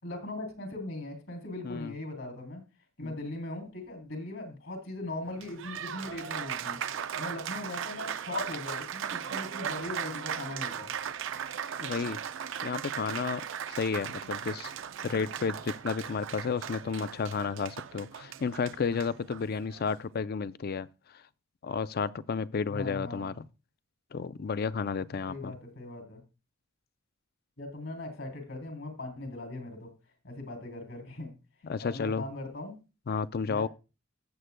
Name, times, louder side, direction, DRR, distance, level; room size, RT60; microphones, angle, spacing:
voice 1, 0.0-2.6 3.0-6.8 7.1-10.9 22.7-23.3 25.3-26.2 27.6-29.9 30.2-31.3 31.8-32.8 33.5-33.7, left 2 dB, 65° left, 3.3 m, -39 dB
voice 2, 1.6-1.9 3.0-3.1 11.8-12.2 12.6-13.4 13.7-14.7 15.0-20.9 21.6-23.5 24.1-25.5 31.6-32.2 33.1-33.7, left 5 dB, 50° left, 0.4 m, -32 dB
Applause, 5.2-20.0, right 8 dB, 65° right, 0.5 m, -38 dB
16.5 x 7.7 x 2.2 m
head